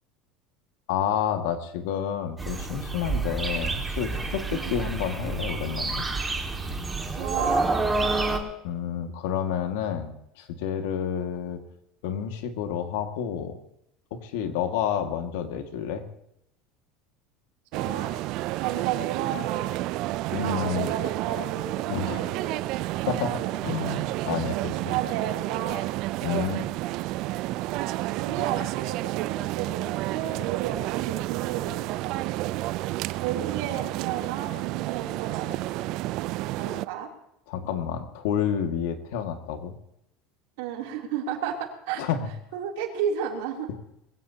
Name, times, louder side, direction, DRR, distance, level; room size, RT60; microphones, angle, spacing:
voice 1, 0.9-6.1 8.1-11.6 12.0-13.6 14.1-16.0 20.3-20.9 21.9-22.2 23.1-25.0 26.2-26.7 37.5-39.7 42.0-42.3, left 8 dB, 80° left, 6 dB, 1.9 m, -30 dB
sound 1, 2.4-8.4, right 3 dB, 10° right, 1.8 m, -28 dB
voice 2, 4.5-4.8 7.2-7.7 17.7-18.1 18.6-19.7 20.4-23.5 24.7-25.8 28.2-32.2 33.2-35.5 35.8-35.9 36.6-37.1 40.6-42.0 42.5-43.7, right 9 dB, 80° right, 1 dB, 3.0 m, -33 dB
sound 2, 17.7-36.9, right 17 dB, 55° right, 0.4 m, -30 dB
21.5 x 15.5 x 2.8 m, 0.80 s
supercardioid pair, 145°, 0 cm